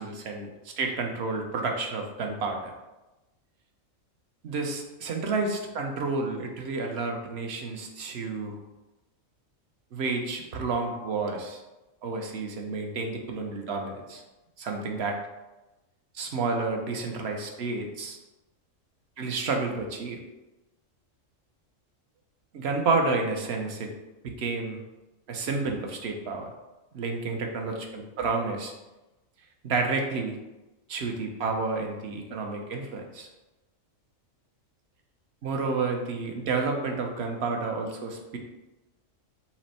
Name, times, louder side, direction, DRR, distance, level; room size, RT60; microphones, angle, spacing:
voice 1, 0.0-2.7 4.4-8.6 9.9-11.6 12.0-14.2 14.6-15.2 16.1-18.2 19.2-20.2 22.5-23.9 24.2-24.8 25.3-26.5 26.9-28.7 29.6-30.4 30.9-33.3 35.4-38.4, right 3 dB, 60° right, 3 dB, 0.9 m, -30 dB
5.9 x 2.1 x 4.1 m, 1.0 s
omnidirectional pair, 1.4 m